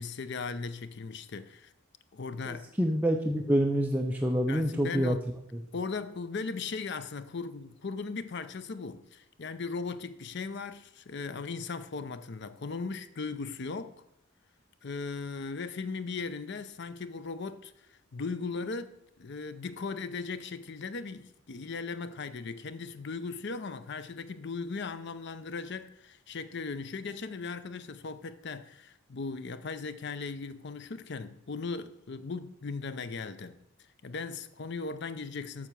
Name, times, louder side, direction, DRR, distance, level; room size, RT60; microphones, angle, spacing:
voice 1, 0.0-1.7 2.1-2.7 4.5-5.2 5.7-14.0 14.8-33.6 34.0-35.7, left 4 dB, 55° left, 0.6 m, -38 dB
voice 2, 2.5-5.2, equal, 10° right, 0.6 m, -27 dB
7.5 x 6.0 x 6.7 m
head